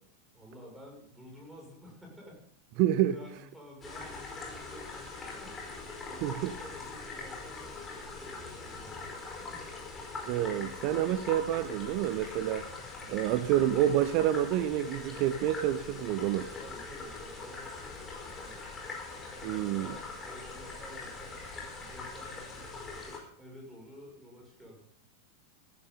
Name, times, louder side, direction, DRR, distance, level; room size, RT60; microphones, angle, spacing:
voice 1, 0.3-2.4 3.1-5.7 6.1-9.6 10.5-11.1 13.0-13.3 16.6-19.0 19.6-22.8 23.4-24.8, equal, 5° right, 7.0 m, -51 dB
voice 2, 2.8-3.2 6.2-6.5 10.3-12.7 13.1-16.5 19.4-19.9, right 12 dB, 45° right, 0.7 m, -28 dB
sound 1, 3.8-23.2, left 3 dB, 20° left, 4.9 m, -42 dB
15.5 x 15.0 x 4.1 m
figure-of-eight pair, 90°, 0 cm